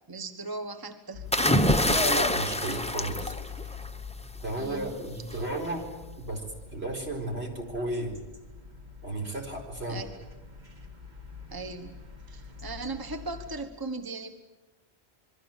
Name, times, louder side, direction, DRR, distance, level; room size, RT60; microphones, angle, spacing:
voice 1, 0.1-1.2 4.6-5.0 5.3-5.4 9.9-10.1 11.5-12.0 12.3-14.3, right 3 dB, 20° right, 7 dB, 1.3 m, -38 dB
sound 1, 1.1-13.6, left 5 dB, 45° right, 1.9 m, -45 dB
sound 2, 1.3-4.1 5.3-5.6, left 1 dB, 5° left, 0.9 m, -25 dB
voice 2, 1.8-3.4 4.4-5.9 6.2-6.4 6.7-8.2 9.0-10.0, right 1 dB, 75° right, 1 dB, 4.7 m, -33 dB
27.5 x 22.5 x 7.4 m, 1.1 s
omnidirectional pair, 1.1 m